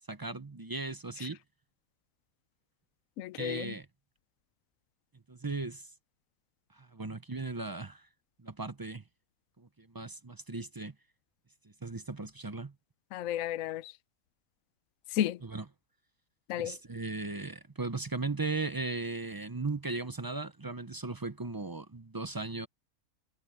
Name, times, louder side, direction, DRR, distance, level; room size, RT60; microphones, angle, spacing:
voice 1, 0.1-1.4 3.4-3.9 5.3-5.8 6.8-8.0 8.4-9.0 9.6-10.9 11.8-12.7 15.4-15.6 16.6-22.7, right 3 dB, 35° right, 0.3 m, -37 dB
voice 2, 3.2-3.8 13.1-13.9 15.1-15.4 16.5-16.8, left 11 dB, 70° left, 1.0 m, -33 dB
omnidirectional pair, 1.6 m